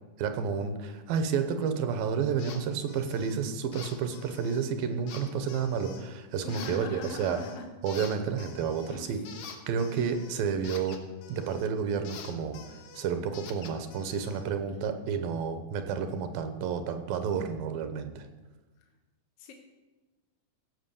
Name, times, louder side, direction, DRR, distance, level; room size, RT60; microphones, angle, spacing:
voice 1, 0.2-7.4 7.8-9.2 9.7-11.0 11.3-12.6 12.9-18.3, right 6 dB, 90° right, 8 dB, 2.7 m, -30 dB
sound 1, 2.4-2.6 2.9-3.4 3.7-4.6 5.1-6.1 6.5-7.6 7.9-11.7 12.0-14.4, left 7 dB, 80° left, 2.9 m, -47 dB
voice 2, 6.4-7.7 8.9-9.2 19.4-19.5, left 3 dB, 65° left, 3 dB, 1.6 m, -41 dB
15.5 x 5.9 x 7.0 m, 1.2 s
omnidirectional pair, 3.9 m